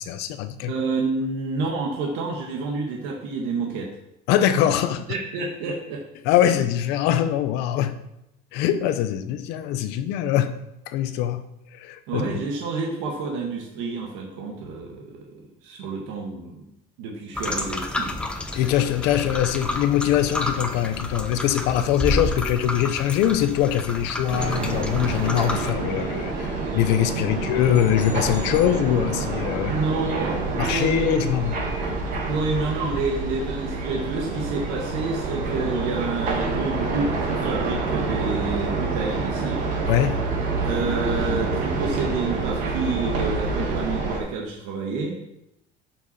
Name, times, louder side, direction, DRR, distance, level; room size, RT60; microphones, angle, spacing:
voice 1, 0.0-0.7 4.3-5.0 6.2-7.9 8.5-10.5 10.9-11.4 11.7-12.3 18.5-29.7 30.5-31.6 39.9-40.2, left 11 dB, 70° left, 10 dB, 0.9 m, -23 dB
voice 2, 0.7-3.9 5.1-6.0 12.1-16.7 17.0-18.2 27.3-27.4 29.7-31.3 32.2-39.7 40.6-45.2, right 3 dB, 85° right, 0 dB, 1.6 m, -29 dB
sound 1, 17.4-25.7, left 1 dB, 5° left, 0.6 m, -30 dB
sound 2, 24.3-44.2, right 3 dB, 45° right, 2.0 m, -27 dB
sound 3, 27.7-29.5, left 3 dB, 25° left, 1.6 m, -46 dB
12.0 x 5.9 x 4.3 m, 0.84 s
cardioid pair, 175°, 18 cm